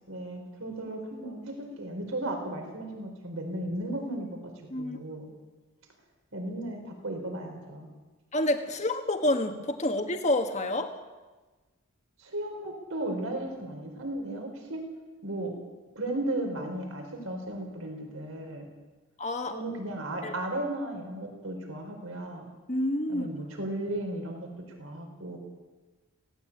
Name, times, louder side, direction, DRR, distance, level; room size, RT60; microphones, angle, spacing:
voice 1, 0.1-4.4 4.8-5.3 6.3-7.9 12.2-14.8 15.2-15.5 15.9-18.7 19.5-22.5 23.1-24.5 24.8-25.4, right 1 dB, 65° right, 3 dB, 4.7 m, -35 dB
voice 2, 4.7-5.1 8.3-10.9 19.2-19.6 20.2-20.3 22.7-23.3, left 1 dB, 30° left, 6 dB, 1.5 m, -28 dB
17.5 x 17.0 x 8.7 m, 1.2 s
head